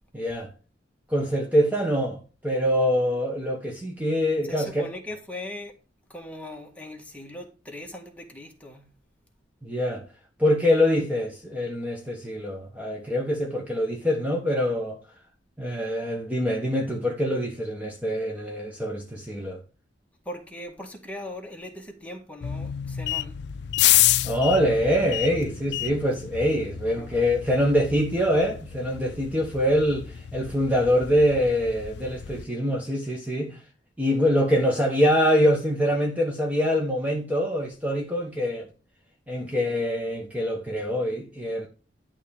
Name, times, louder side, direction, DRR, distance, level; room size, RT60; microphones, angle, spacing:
voice 1, 0.1-0.5 1.1-4.9 9.6-10.0 10.4-15.0 15.6-19.6 24.2-33.6 34.0-38.7 39.3-41.7, equal, 10° right, 1.3 m, -24 dB
voice 2, 4.4-5.7 6.1-8.9 10.7-11.1 20.3-23.4 26.8-27.2, left 1 dB, 10° left, 1.7 m, -40 dB
sound 1, 22.4-32.4, left 13 dB, 65° left, 0.4 m, -29 dB
11.0 x 3.7 x 7.0 m
head